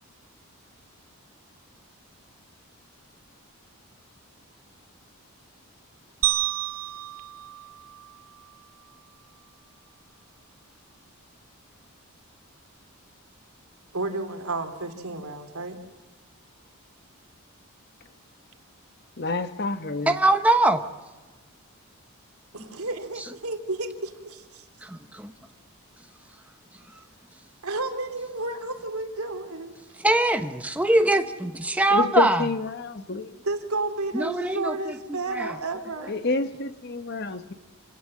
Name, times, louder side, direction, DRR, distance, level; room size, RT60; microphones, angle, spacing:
sound 1, 6.2-8.6, right 14 dB, 65° right, 1.2 m, -30 dB
voice 1, 13.9-15.8 22.5-24.7 26.9-27.0 27.6-29.7 33.4-36.1, right 2 dB, 80° right, 6 dB, 2.8 m, -32 dB
voice 2, 19.2-20.2 31.9-33.4 36.1-37.5, left 3 dB, 50° left, 10 dB, 1.1 m, -28 dB
voice 3, 20.1-20.9 24.8-25.3 30.0-32.5 34.1-34.9 35.3-35.6, right 1 dB, 5° right, 7 dB, 0.9 m, -22 dB
27.0 x 17.5 x 7.5 m, 1.3 s
head